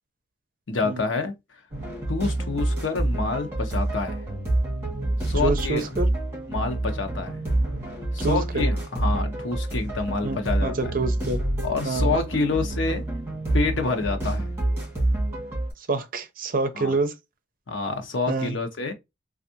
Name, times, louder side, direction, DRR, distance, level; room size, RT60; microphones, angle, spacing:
voice 1, 0.7-1.3 2.1-4.2 5.2-5.8 6.5-7.5 8.1-10.8 11.6-13.0 13.5-14.5 16.7-16.9 17.7-18.9, left 3 dB, 85° left, 0.8 m, -28 dB
sound 1, 1.7-15.7, right 1 dB, 15° right, 1.8 m, -27 dB
voice 2, 5.4-6.1 8.2-8.6 10.2-11.4 11.8-12.2 15.8-17.1 18.3-18.6, right 3 dB, 45° right, 0.6 m, -27 dB
3.4 x 2.4 x 2.6 m
head